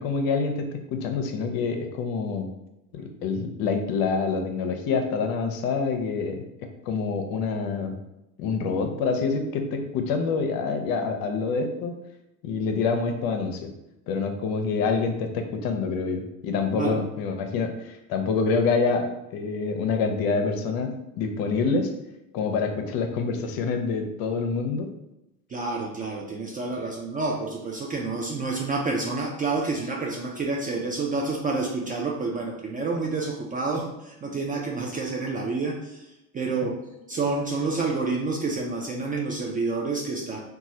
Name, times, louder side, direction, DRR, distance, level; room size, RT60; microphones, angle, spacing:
voice 1, 0.0-2.5 2.9-6.5 6.9-7.9 8.4-12.0 12.4-13.7 14.1-21.9 22.3-24.9, left 4 dB, 55° left, 5 dB, 0.6 m, -26 dB
voice 2, 25.5-36.8 37.1-40.4, right 3 dB, 20° right, -1 dB, 0.3 m, -29 dB
3.0 x 2.3 x 2.7 m, 0.90 s
hypercardioid pair, 80°, 44 cm